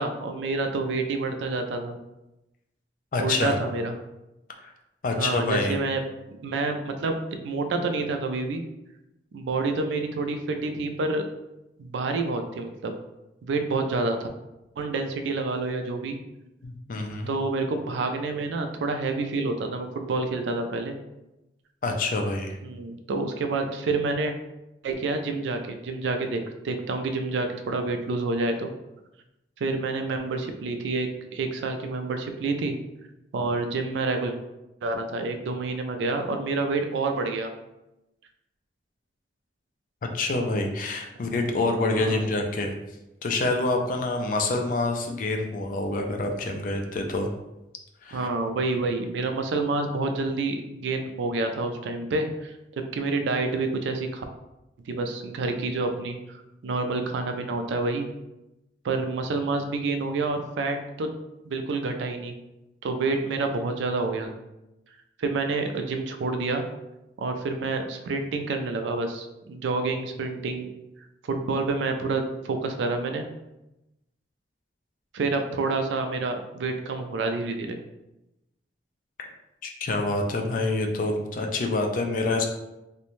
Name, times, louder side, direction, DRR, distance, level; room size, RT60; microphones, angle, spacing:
voice 1, 0.0-2.0 3.2-4.0 5.2-6.0 6.4-7.2 7.4-8.6 9.3-11.2 11.8-12.9 13.4-14.2 14.8-16.2 17.3-21.0 22.6-24.3 24.8-28.7 29.6-32.8 33.3-34.3 34.8-37.5 41.9-42.3 48.1-52.5 52.9-54.2 54.9-58.1 58.8-61.1 61.4-62.3 62.8-64.3 65.2-66.6 67.2-70.7 71.2-73.3 75.1-77.8, right 3 dB, 80° right, 6 dB, 0.3 m, -28 dB
voice 2, 3.1-3.6 4.6-4.7 5.0-5.8 16.6-17.3 21.8-22.6 40.1-42.7 43.2-47.3 48.0-48.3 79.6-82.5, left 2 dB, 45° left, 3 dB, 0.3 m, -26 dB
2.5 x 2.1 x 3.0 m, 0.94 s
head